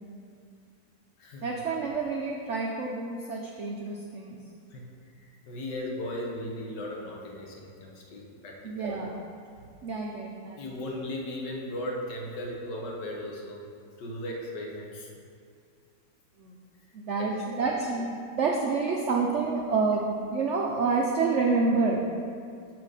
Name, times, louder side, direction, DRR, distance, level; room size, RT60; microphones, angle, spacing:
voice 1, 1.4-4.4 8.6-9.1 9.8-10.6 12.5-12.6 16.4-16.5 16.9-22.0, right 4 dB, 70° right, -1 dB, 0.6 m, -28 dB
voice 2, 5.1-8.9 10.5-13.6 14.0-15.1 17.2-17.6, left 1 dB, 70° left, -1 dB, 1.7 m, -37 dB
6.7 x 6.1 x 5.0 m, 2.4 s
omnidirectional pair, 2.0 m